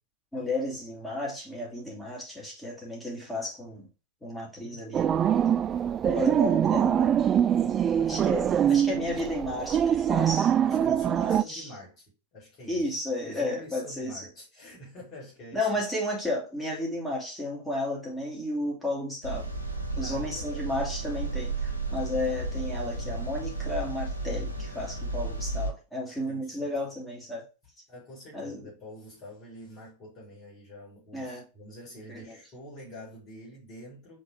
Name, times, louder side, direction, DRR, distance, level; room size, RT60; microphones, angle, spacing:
voice 1, 0.3-3.9 4.2-5.1 6.0-7.1 8.0-11.7 12.7-14.3 15.5-19.5 20.0-27.4 28.3-28.6 31.1-31.4 32.1-32.4, left 1 dB, 10° left, -3 dB, 2.8 m, -33 dB
sound 1, 4.9-11.4, right 9 dB, 25° right, 0.3 m, -24 dB
voice 2, 7.5-9.1 10.6-12.0 12.3-15.8 20.0-20.7 26.2-26.7 27.9-34.2, left 1 dB, 35° left, -5 dB, 3.3 m, -46 dB
sound 2, 19.2-25.7, right 2 dB, 90° left, 1.2 m, -33 dB
5.4 x 3.9 x 4.7 m, 0.31 s
figure-of-eight pair, 90°, 0 cm